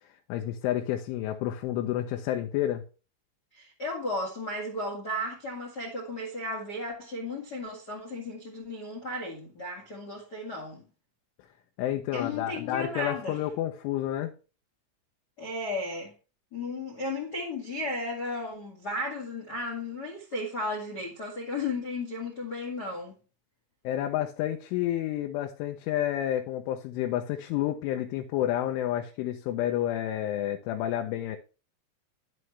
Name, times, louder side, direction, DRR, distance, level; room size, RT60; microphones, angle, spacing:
voice 1, 0.3-2.8 11.8-14.3 23.8-31.4, left 12 dB, 90° left, 3.3 m, -30 dB
voice 2, 3.5-10.8 12.1-13.4 15.4-16.1 16.5-23.1, left 2 dB, 55° left, 1.0 m, -34 dB
11.0 x 7.6 x 3.2 m
omnidirectional pair, 5.4 m